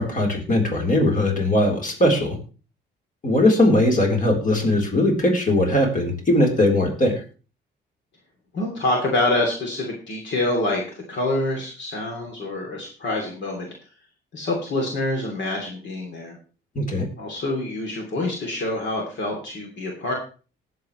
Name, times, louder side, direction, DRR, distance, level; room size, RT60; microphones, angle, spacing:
voice 1, 0.0-2.4 3.2-7.1 16.8-17.1, left 1 dB, 45° left, 1 dB, 3.9 m, -20 dB
voice 2, 8.5-10.8 11.1-13.7 14.3-16.4 17.2-20.1, left 2 dB, 65° left, 0 dB, 3.0 m, -26 dB
19.0 x 7.6 x 3.2 m, 0.36 s
cardioid pair, 90°, 20 cm